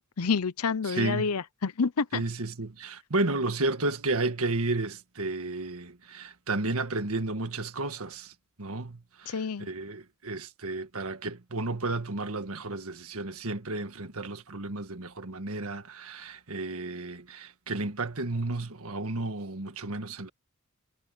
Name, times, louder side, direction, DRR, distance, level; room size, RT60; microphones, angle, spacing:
voice 1, 0.0-2.2 9.3-9.7, left 5 dB, 85° left, 0.7 m, -28 dB
voice 2, 0.8-1.3 2.1-8.3 8.6-20.3, right 2 dB, 70° right, 1.6 m, -32 dB
head